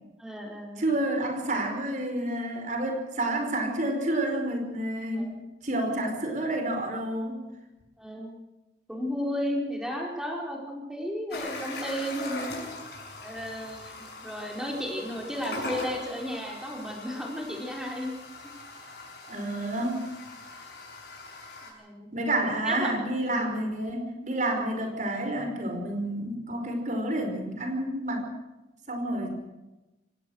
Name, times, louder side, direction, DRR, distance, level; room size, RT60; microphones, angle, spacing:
voice 1, 0.2-0.8 5.1-5.3 8.0-8.3 8.9-12.5 13.2-18.1 18.4-18.5 21.6-22.1 22.6-22.9 23.3-23.6, equal, 5° right, 0 dB, 4.6 m, -34 dB
voice 2, 0.8-5.2 5.6-7.4 19.3-20.1 22.1-28.3 28.9-29.3, right 1 dB, 45° right, 4 dB, 5.0 m, -29 dB
sound 1, 11.3-21.7, left 2 dB, 60° left, 6.7 m, -41 dB
24.0 x 18.0 x 6.4 m, 1.0 s
head